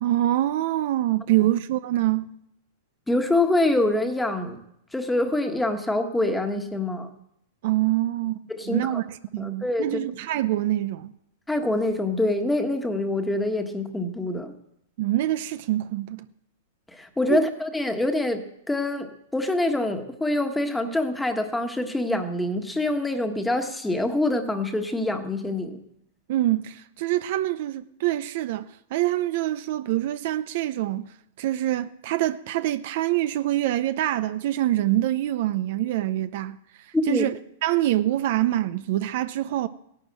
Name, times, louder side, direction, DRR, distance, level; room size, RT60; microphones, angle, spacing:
voice 1, 0.0-2.4 7.6-8.4 8.7-9.0 9.3-11.1 15.0-16.3 17.3-17.5 26.3-31.1 31.4-36.6 37.1-37.4 37.6-39.7, right 14 dB, 55° right, 0.6 m, -25 dB
voice 2, 3.1-4.6 4.9-7.1 8.6-9.0 9.4-10.0 11.5-14.5 16.9-18.4 18.7-25.8 36.9-37.2, left 2 dB, 5° left, 1.5 m, -25 dB
16.0 x 11.5 x 7.6 m
hypercardioid pair, 145°, 0 cm